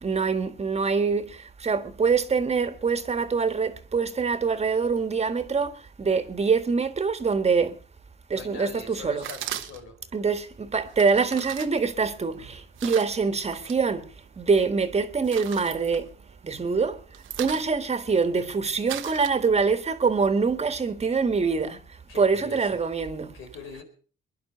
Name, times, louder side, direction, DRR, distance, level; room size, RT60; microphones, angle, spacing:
voice 1, 0.0-7.8 8.3-9.3 10.1-14.1 14.4-16.1 16.4-17.0 17.4-21.8 22.1-23.3, right 5 dB, 30° right, 1.6 m, -25 dB
voice 2, 8.3-9.9 22.1-22.8 23.3-23.8, left 5 dB, 85° left, 4.5 m, -42 dB
sound 1, 9.2-10.0 10.9-13.8 14.2-14.7 15.0-16.6 16.9-19.9, right 12 dB, 85° right, 1.1 m, -39 dB
21.0 x 11.0 x 5.7 m
cardioid pair, 90°, 20 cm